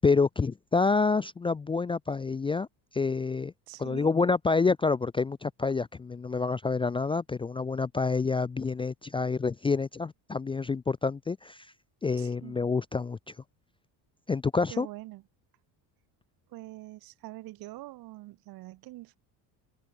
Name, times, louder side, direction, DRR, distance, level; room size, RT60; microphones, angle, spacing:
voice 1, 0.0-2.7 2.9-3.5 3.8-11.7 12.0-13.2 14.3-14.9, left 4 dB, 15° left, 0.5 m, -27 dB
voice 2, 3.7-4.1 12.2-12.6 14.7-15.2 16.5-19.2, right 17 dB, 60° right, 1.7 m, -44 dB
cardioid pair, 150°, 41 cm